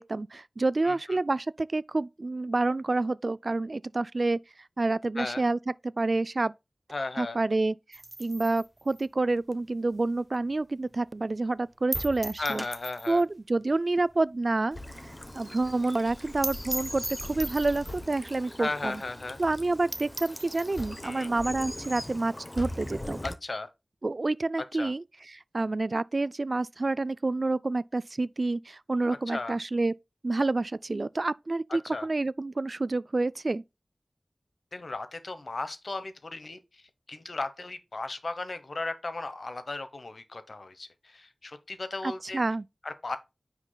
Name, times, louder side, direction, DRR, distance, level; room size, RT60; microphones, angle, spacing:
voice 1, 0.0-4.4 4.8-6.5 7.2-12.6 13.1-14.8 15.0-19.0 19.4-23.2 24.0-29.9 30.2-33.6 42.0-42.7, right 2 dB, 55° right, 0.3 m, -28 dB
voice 2, 6.9-7.4 12.4-13.2 18.6-19.4 21.0-21.3 23.2-23.7 24.8-24.9 29.1-29.6 31.9-32.1 34.7-36.6 37.1-42.4 42.8-43.2, left 3 dB, 70° left, 1.0 m, -35 dB
sound 1, 7.9-10.6 10.9-11.0 11.3-11.4 11.9-13.3 13.6-13.7 14.0-14.1 14.5-14.6 14.8-14.9 15.2-15.3 15.6-15.7 16.1-16.2 16.4-18.1 18.8-18.9 19.2-19.3 19.6-19.7 19.9-20.9, right 1 dB, 25° right, 0.7 m, -38 dB
sound 2, 11.8-12.7 14.0-14.1 14.6-15.5 16.6-16.8 17.3-17.4 17.8-18.6 19.1-20.2 20.8-21.6 22.6-23.5, left 1 dB, 45° left, 4.4 m, -43 dB
Bird vocalization bird call bird song / Stream, 14.7-23.3, left 1 dB, 20° left, 0.9 m, -41 dB
9.7 x 5.9 x 2.3 m
wide cardioid pair, 60°, 0 cm